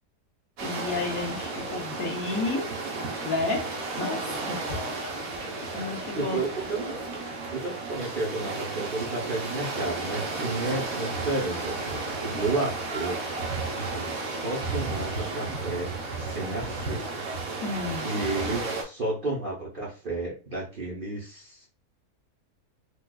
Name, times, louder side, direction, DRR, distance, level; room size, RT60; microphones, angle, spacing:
voice 1, 0.6-2.7 3.2-3.6 3.9-4.6 5.7-6.4 17.6-18.1, left 3 dB, 65° left, -1 dB, 1.3 m, -31 dB
sound 1, 0.6-18.8, right 3 dB, 65° right, 1.1 m, -33 dB
voice 2, 6.1-6.9 7.2-13.2 13.9-17.2 18.0-21.7, right 2 dB, 40° right, -5 dB, 0.9 m, -32 dB
4.5 x 2.4 x 2.2 m, 0.34 s
omnidirectional pair, 1.7 m